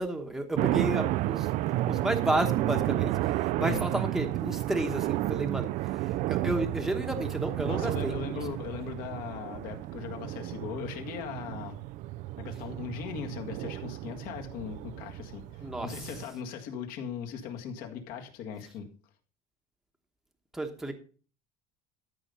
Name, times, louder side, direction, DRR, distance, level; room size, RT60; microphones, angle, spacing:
voice 1, 0.0-1.5 1.9-8.4 15.6-16.0 20.5-20.9, right 1 dB, ahead, 1.1 m, -32 dB
sound 1, 0.6-16.2, right 15 dB, 45° right, 0.4 m, -32 dB
voice 2, 7.7-11.8 12.4-18.9, left 7 dB, 55° left, 1.8 m, -39 dB
13.0 x 5.7 x 5.3 m
cardioid pair, 170°, 18 cm